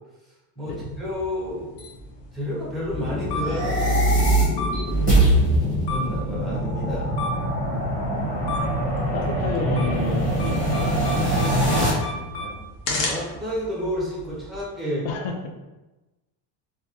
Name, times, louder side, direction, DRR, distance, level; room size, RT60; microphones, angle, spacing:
voice 1, 0.6-1.8 2.3-4.5 5.3-7.1 12.9-15.1, equal, ahead, -7 dB, 0.3 m, -31 dB
sound 1, 0.7-14.6, left 1 dB, 70° left, 1.0 m, -35 dB
sound 2, 2.9-6.8, left 4 dB, 90° left, 1.3 m, -32 dB
sound 3, 3.4-11.9, right 1 dB, 15° left, 0.9 m, -22 dB
voice 2, 7.7-8.5 9.1-12.6 15.0-15.5, left 3 dB, 50° left, 3 dB, 0.6 m, -33 dB
3.5 x 2.6 x 2.8 m, 1.1 s
cardioid pair, 170°, 49 cm